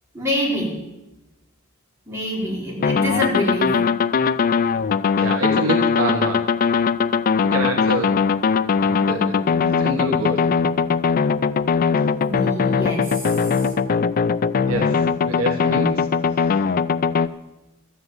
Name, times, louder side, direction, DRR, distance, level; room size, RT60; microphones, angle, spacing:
voice 1, 0.1-0.8 2.1-3.8 8.9-9.7 12.2-13.7 15.5-15.8, equal, 15° right, -5 dB, 4.3 m, -27 dB
sound 1, 2.8-17.3, left 5 dB, 40° left, 0.4 m, -20 dB
voice 2, 5.2-6.5 7.5-8.2 8.8-9.4 9.8-10.5 14.7-16.1 16.3-16.5, right 2 dB, 85° right, 2 dB, 1.4 m, -26 dB
13.0 x 8.2 x 8.0 m, 1.0 s
head